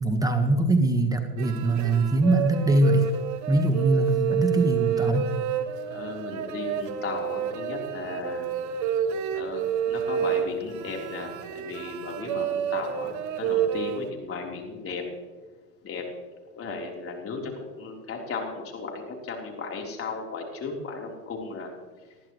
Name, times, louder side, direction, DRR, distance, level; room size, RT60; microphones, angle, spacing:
voice 1, 0.0-3.1 3.5-5.3, right 2 dB, 5° right, 5 dB, 1.3 m, -22 dB
sound 1, 1.4-14.1, right 9 dB, 35° right, 1.2 m, -29 dB
voice 2, 5.8-8.5 9.3-13.1 13.4-15.0 15.8-16.0 16.5-21.7, left 4 dB, 25° left, 0 dB, 3.8 m, -35 dB
20.0 x 14.0 x 3.2 m, 1.3 s
hypercardioid pair, 100°, 49 cm